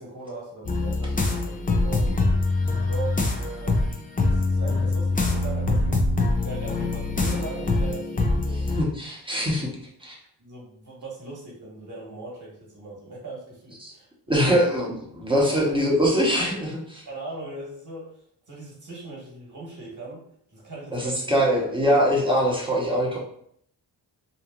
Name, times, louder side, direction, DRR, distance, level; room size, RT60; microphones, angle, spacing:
voice 1, 0.0-2.2 2.8-3.8 4.2-6.0 6.4-8.6 9.5-9.6 10.4-14.6 15.5-15.7 16.1-16.2 17.0-18.2 18.5-20.2 20.5-21.2 21.6-21.7, right 3 dB, 45° right, -4 dB, 1.5 m, -39 dB
sound 1, 0.7-8.8, left 2 dB, 20° left, 0.5 m, -24 dB
voice 2, 8.5-9.7 10.0-10.1 13.8-13.9 14.3-14.9 15.1-17.0 20.9-23.2, equal, 10° right, -4 dB, 1.0 m, -23 dB
2.9 x 2.3 x 2.4 m, 0.66 s
cardioid pair, 65°, 42 cm